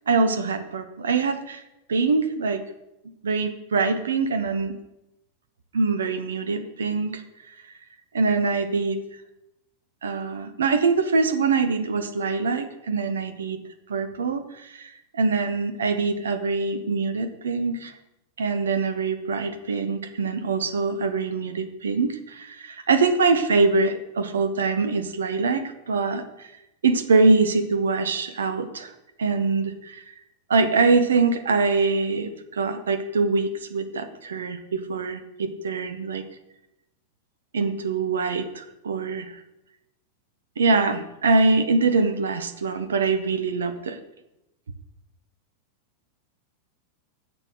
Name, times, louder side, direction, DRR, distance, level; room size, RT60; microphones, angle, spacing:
voice 1, 0.1-1.6 1.9-2.6 3.2-4.8 5.7-7.2 8.1-9.0 10.0-13.6 13.9-17.9 18.4-26.5 26.8-28.9 29.2-30.1 30.5-36.2 37.5-39.3 40.6-44.0, right 4 dB, 65° right, 9 dB, 1.1 m, -24 dB
10.5 x 6.8 x 8.0 m, 0.90 s
figure-of-eight pair, 90°, 0 cm